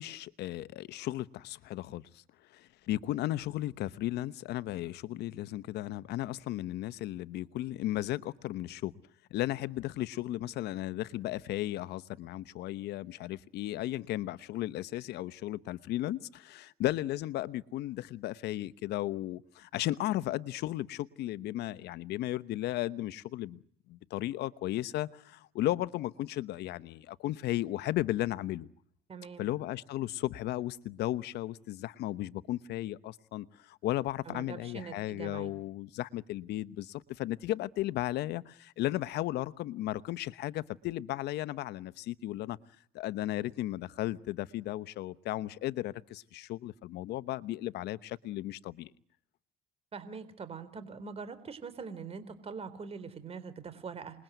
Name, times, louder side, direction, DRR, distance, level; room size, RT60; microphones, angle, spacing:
voice 1, 0.0-2.2 2.5-8.9 9.3-23.6 23.9-28.7 29.4-42.6 42.9-48.9, left 15 dB, 75° left, 1.1 m, -35 dB
voice 2, 29.1-29.5 34.3-35.5 49.9-54.2, right 5 dB, 35° right, 4.0 m, -43 dB
27.5 x 21.5 x 9.3 m
cardioid pair, 110°, 17 cm